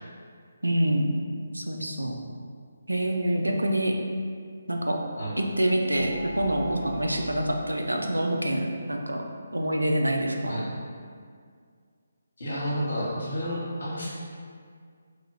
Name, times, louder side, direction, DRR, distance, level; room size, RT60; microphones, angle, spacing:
voice 1, 0.6-1.2 1.5-2.2 2.9-3.9 4.7-5.0 5.4-9.2 9.5-10.6, right 1 dB, 85° right, 2 dB, 0.4 m, -26 dB
sound 1, 5.4-7.5, equal, 25° left, 1.0 m, -41 dB
voice 2, 12.4-14.1, equal, 65° left, -6 dB, 1.1 m, -31 dB
3.2 x 2.3 x 3.3 m, 2.1 s
figure-of-eight pair, 145°, 0 cm